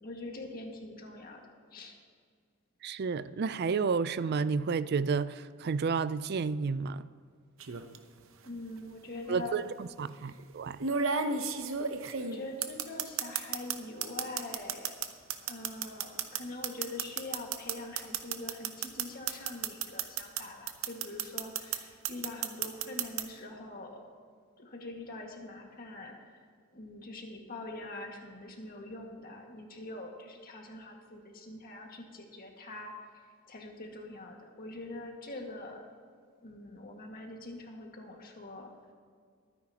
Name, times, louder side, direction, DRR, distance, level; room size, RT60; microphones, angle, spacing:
voice 1, 0.0-1.9 8.4-9.6 12.2-15.0 15.5-24.1 24.6-26.3 26.7-33.0 33.5-35.8 36.4-38.7, left 2 dB, 45° left, 1.8 m, -44 dB
voice 2, 2.8-7.0 9.3-10.8, right 5 dB, 50° right, 0.4 m, -31 dB
sound 1, 7.6-8.0 9.2-9.3 10.8-13.8 14.0-20.4 20.7-21.8 22.0-23.2, right 6 dB, 65° right, 0.8 m, -32 dB
22.5 x 9.9 x 2.9 m
head